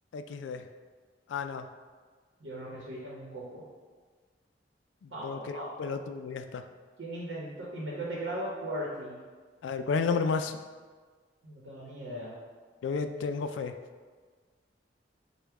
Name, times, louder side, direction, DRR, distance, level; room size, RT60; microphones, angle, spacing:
voice 1, 0.1-0.7 1.3-1.7 5.0-6.6 9.6-10.6 12.8-13.7, left 5 dB, 85° left, 9 dB, 0.3 m, -32 dB
voice 2, 2.4-3.6 5.1-6.0 7.0-9.2 11.4-12.3, right 1 dB, 80° right, -5 dB, 0.9 m, -38 dB
5.2 x 2.2 x 4.5 m, 1.5 s
head